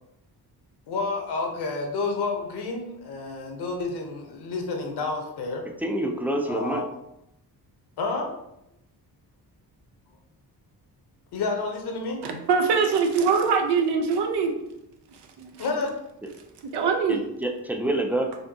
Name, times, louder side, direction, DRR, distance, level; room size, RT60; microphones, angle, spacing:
voice 1, 0.9-5.6 6.5-6.9 8.0-8.3 11.3-12.2 15.6-15.9, left 3 dB, 80° left, 2 dB, 1.0 m, -29 dB
voice 2, 5.8-6.9 16.2-16.3 17.1-18.4, right 1 dB, 5° right, 2 dB, 0.3 m, -27 dB
voice 3, 12.2-14.6 15.4-15.5 16.7-17.2, right 5 dB, 85° right, 5 dB, 0.7 m, -23 dB
4.3 x 2.7 x 2.8 m, 0.83 s
cardioid pair, 135°, 39 cm